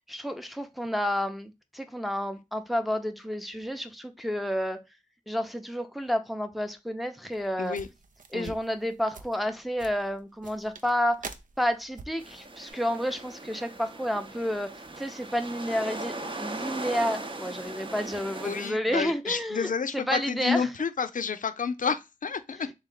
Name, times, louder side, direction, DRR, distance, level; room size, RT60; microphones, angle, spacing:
voice 1, 0.1-4.8 5.3-7.8 8.3-11.2 11.6-14.7 15.0-16.1 16.4-20.6, equal, ahead, 0.6 m, -30 dB
sound 1, 7.3-12.7, right 4 dB, 75° right, 0.6 m, -46 dB
voice 2, 7.6-7.9 8.3-8.6 18.4-22.7, left 6 dB, 75° left, 0.5 m, -30 dB
sound 2, 12.2-18.7, right 2 dB, 40° right, 0.7 m, -39 dB
3.7 x 3.2 x 3.8 m
wide cardioid pair, 85°, 14 cm